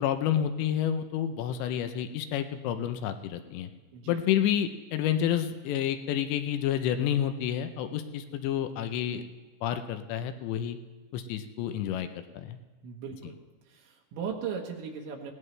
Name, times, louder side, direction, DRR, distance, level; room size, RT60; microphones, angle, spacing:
voice 1, 0.0-3.7 4.1-9.2 9.6-10.8 11.1-12.1 12.3-12.6, left 10 dB, 80° left, 9 dB, 2.8 m, -29 dB
voice 2, 12.8-13.4 13.6-15.3, right 6 dB, 75° right, 0 dB, 3.4 m, -37 dB
21.5 x 17.5 x 3.3 m, 1.3 s
omnidirectional pair, 5.5 m